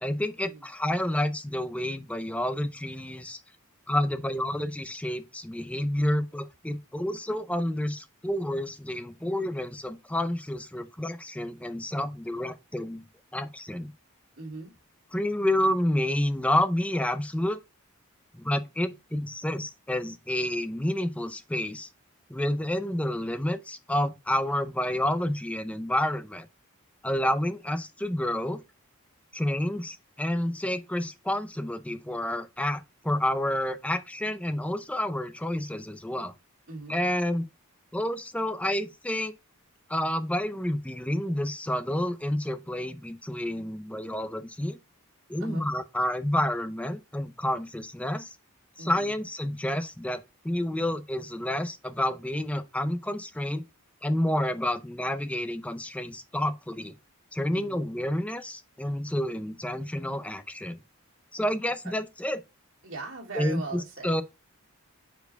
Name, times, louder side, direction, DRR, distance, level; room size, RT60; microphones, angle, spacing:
voice 1, 0.0-3.4 3.9-13.0 13.3-13.9 15.1-17.6 18.3-21.9 22.3-26.5 27.0-28.6 29.3-36.3 36.9-37.4 37.9-39.3 39.9-44.8 45.3-48.4 48.8-53.6 54.0-56.9 57.3-60.8 61.3-62.4 63.4-64.2, left 1 dB, 5° left, 0.5 m, -29 dB
voice 2, 14.4-14.7 27.1-27.4 36.7-37.0 45.4-45.7 48.8-49.2 57.5-57.9 61.8-62.0 62.8-64.2, right 3 dB, 60° right, 2.4 m, -40 dB
4.6 x 4.6 x 5.1 m
head